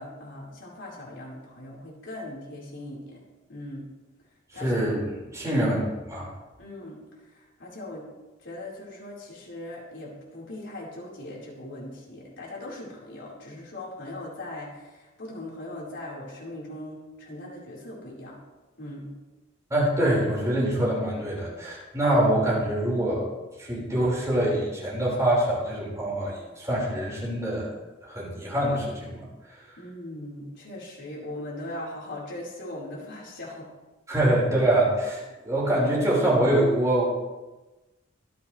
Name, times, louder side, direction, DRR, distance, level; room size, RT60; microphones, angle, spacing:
voice 1, 0.0-3.2 3.5-3.8 4.5-4.7 5.5-5.7 6.6-8.0 8.4-18.4 18.8-19.1 29.8-33.7, left 1 dB, 65° left, -5 dB, 4.6 m, -40 dB
voice 2, 4.5-5.8 6.1-6.3 19.7-23.3 23.6-27.7 28.0-29.3 34.1-37.0, right 1 dB, 15° right, -6 dB, 5.2 m, -24 dB
25.0 x 8.5 x 3.4 m, 1.1 s
head